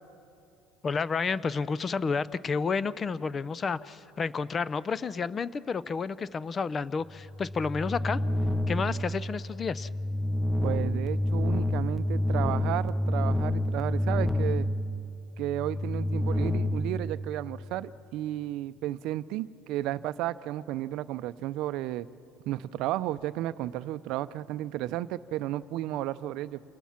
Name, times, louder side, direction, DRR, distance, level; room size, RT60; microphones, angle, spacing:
voice 1, 0.8-8.2 8.7-9.9, left 5 dB, 25° left, 18 dB, 0.5 m, -30 dB
sound 1, 7.1-17.8, left 1 dB, ahead, 0.8 m, -29 dB
voice 2, 10.6-14.7 15.4-22.1 22.5-26.6, right 14 dB, 65° right, 15 dB, 0.5 m, -33 dB
28.5 x 20.5 x 5.8 m, 2.6 s
cardioid pair, 125°, 0 cm